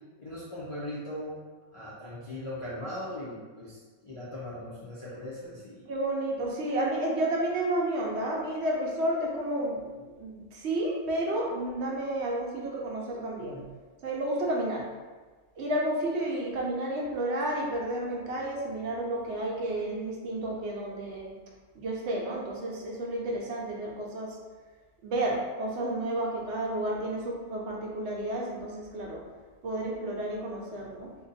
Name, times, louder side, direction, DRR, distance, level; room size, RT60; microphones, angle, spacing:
voice 1, 0.2-1.4 1.7-5.9, left 1 dB, 50° left, -9 dB, 0.3 m, -39 dB
voice 2, 5.9-9.9 10.2-13.6 14.0-14.9 15.6-21.3 21.8-24.4 25.0-29.2 29.6-31.1, right 1 dB, 65° right, -2 dB, 0.8 m, -31 dB
2.6 x 2.2 x 3.9 m, 1.4 s
omnidirectional pair, 1.3 m